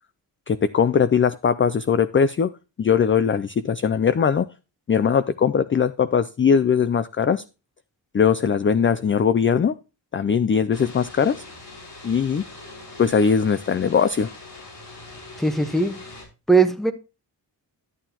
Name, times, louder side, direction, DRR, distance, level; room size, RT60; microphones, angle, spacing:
voice 1, 0.5-2.5 2.8-4.5 4.9-7.4 8.1-9.7 10.1-11.4 12.0-12.4 13.0-14.3, left 6 dB, 30° left, 0.4 m, -20 dB
sound 1, 10.7-16.2, left 2 dB, 70° left, 5.0 m, -42 dB
voice 2, 15.4-16.0 16.5-16.9, right 4 dB, ahead, 1.0 m, -19 dB
11.0 x 8.8 x 2.9 m
wide cardioid pair, 105°, 42 cm